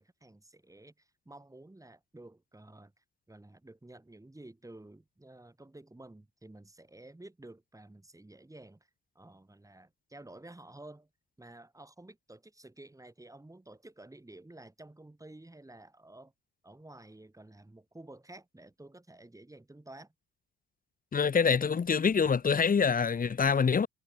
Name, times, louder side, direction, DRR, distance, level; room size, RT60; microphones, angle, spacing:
voice 1, 0.0-8.9 9.1-11.1 11.4-16.3 16.6-20.1, right 2 dB, 10° right, 4.4 m, -52 dB
voice 2, 21.1-23.9, left 6 dB, 30° left, 0.9 m, -25 dB
cardioid pair, 90°, 30 cm